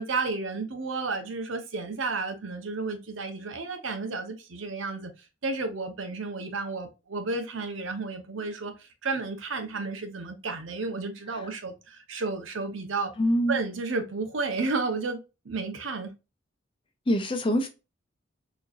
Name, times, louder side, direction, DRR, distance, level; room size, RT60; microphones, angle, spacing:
voice 1, 0.0-5.1 5.4-13.1 13.5-15.2 15.4-16.1, right 3 dB, 85° right, 0.8 m, -32 dB
voice 2, 13.2-13.6 17.1-17.7, equal, 25° left, 0.6 m, -24 dB
4.1 x 3.1 x 2.4 m
head